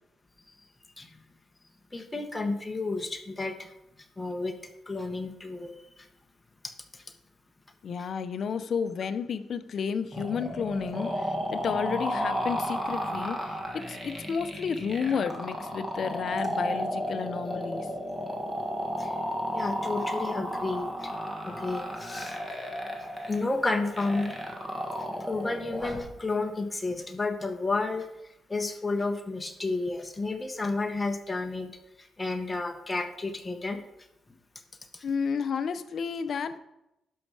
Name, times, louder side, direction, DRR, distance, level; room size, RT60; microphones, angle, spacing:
voice 1, 1.9-3.7 4.2-6.1 6.6-7.0 19.0-19.1 19.5-21.1 21.5-22.4 23.0-24.6 25.2-28.1 28.5-31.7 32.0-33.8 34.9-35.1, left 3 dB, 15° left, 4 dB, 0.9 m, -32 dB
voice 2, 7.8-17.9 35.0-36.6, left 6 dB, 45° left, 11 dB, 0.5 m, -31 dB
sound 1, 10.1-26.1, equal, 10° right, 1.4 m, -33 dB
12.0 x 5.3 x 4.7 m, 0.88 s
wide cardioid pair, 175°, 0 cm